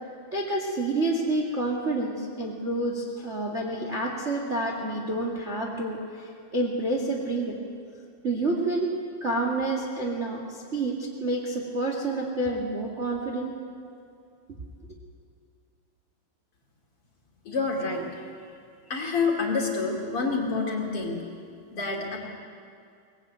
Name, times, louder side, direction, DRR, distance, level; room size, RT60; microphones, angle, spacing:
voice 1, 0.3-7.6 8.2-8.9 9.2-13.5, right 2 dB, 25° right, 0 dB, 1.7 m, -28 dB
voice 2, 17.4-18.2 18.9-21.2 21.7-22.2, left 4 dB, 40° left, 0 dB, 3.4 m, -28 dB
23.0 x 20.0 x 9.3 m, 2.4 s
omnidirectional pair, 4.3 m